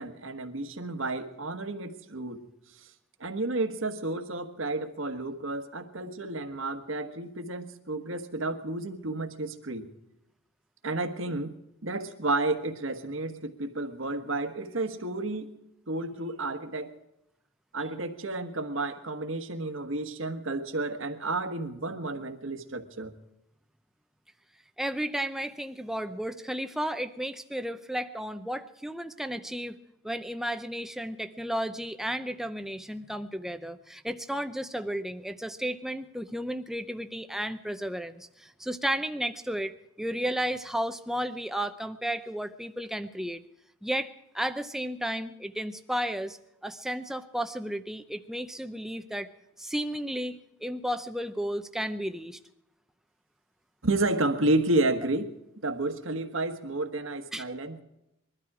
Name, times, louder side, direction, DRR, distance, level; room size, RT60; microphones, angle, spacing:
voice 1, 0.0-2.4 3.2-9.9 10.8-11.5 11.8-15.5 15.9-16.9 17.7-23.1 53.8-55.3 55.6-57.8, right 2 dB, 70° right, 7 dB, 1.4 m, -31 dB
voice 2, 24.8-29.8 30.0-39.7 40.0-43.4 43.8-49.3 49.6-52.4 57.3-57.4, equal, ahead, 9 dB, 0.7 m, -33 dB
22.0 x 12.5 x 4.9 m, 0.86 s
head